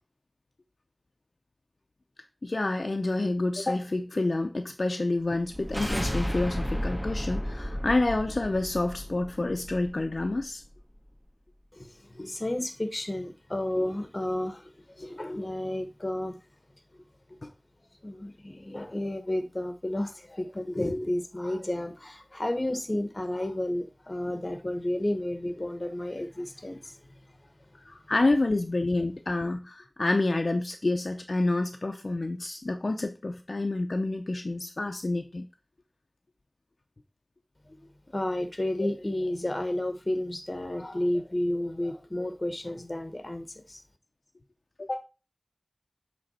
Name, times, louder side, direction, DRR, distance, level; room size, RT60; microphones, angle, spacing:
voice 1, 2.4-10.6 17.4-17.5 27.9-35.5 44.8-45.0, left 2 dB, 85° left, 0.6 m, -28 dB
sound 1, 5.3-10.4, equal, 10° right, 1.7 m, -33 dB
voice 2, 11.7-16.3 18.0-27.0 38.1-43.8, left 1 dB, 50° left, 1.2 m, -31 dB
7.8 x 3.4 x 4.2 m
wide cardioid pair, 45°, 0 cm